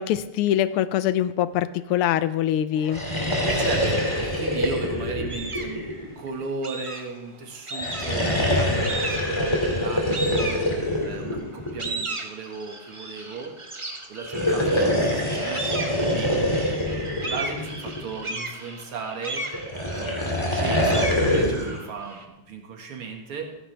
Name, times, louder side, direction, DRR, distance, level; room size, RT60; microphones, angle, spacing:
voice 1, 0.0-3.0, left 11 dB, 90° left, 14 dB, 1.6 m, -23 dB
sound 1, 2.8-6.4 7.7-12.0 14.2-18.2 19.5-21.8, left 1 dB, 15° left, 2.2 m, -25 dB
voice 2, 3.5-13.6 14.1-16.4 17.1-19.5 20.0-23.5, right 4 dB, 85° right, 3 dB, 2.6 m, -36 dB
sound 2, 5.3-5.8 6.6-7.3 7.7-8.4 8.8-9.5 10.1-11.1 11.5-22.2, right 2 dB, 20° right, 0.8 m, -35 dB
15.5 x 15.0 x 3.4 m, 0.95 s
omnidirectional pair, 2.4 m